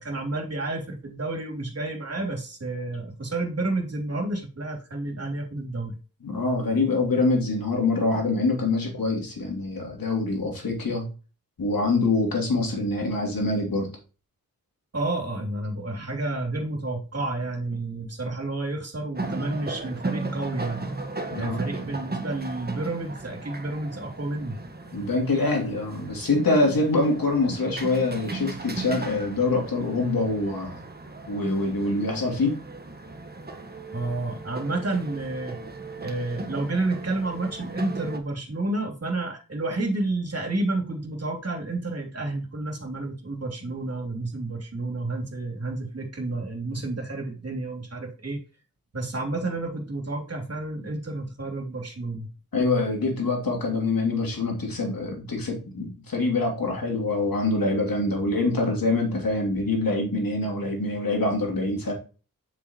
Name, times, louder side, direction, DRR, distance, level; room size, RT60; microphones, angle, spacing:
voice 1, 0.0-5.9 14.9-20.8 21.4-24.6 33.9-35.6 36.0-48.4 48.9-52.3, right 2 dB, 45° right, 2 dB, 3.0 m, -30 dB
voice 2, 6.2-11.1 11.6-13.9 21.3-21.6 24.9-30.8 31.3-32.6 43.6-43.7 52.5-61.9, left 2 dB, 80° left, 0 dB, 2.9 m, -25 dB
sound 1, 19.2-38.2, right 3 dB, 30° right, 1.3 m, -36 dB
7.8 x 6.3 x 3.0 m, 0.34 s
wide cardioid pair, 60°, 34 cm